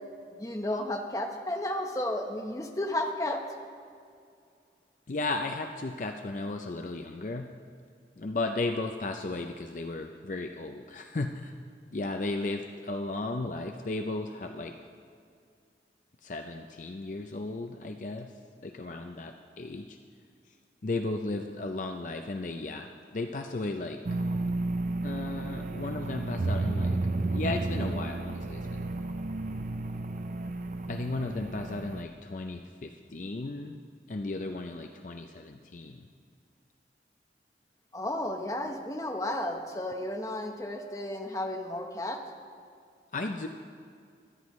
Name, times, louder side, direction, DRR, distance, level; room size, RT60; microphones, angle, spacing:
voice 1, 0.4-3.4 37.9-42.2, left 1 dB, 20° left, 3 dB, 0.9 m, -33 dB
voice 2, 5.1-7.5 8.2-11.5 11.9-14.7 16.2-18.3 18.6-20.0 20.8-24.0 25.0-27.0 27.3-28.9 30.9-33.8 34.1-36.0 43.1-43.5, left 2 dB, 45° left, 5 dB, 0.5 m, -35 dB
sound 1, 24.0-32.0, right 2 dB, 45° right, 0.5 m, -32 dB
24.0 x 9.7 x 3.1 m, 2.3 s
head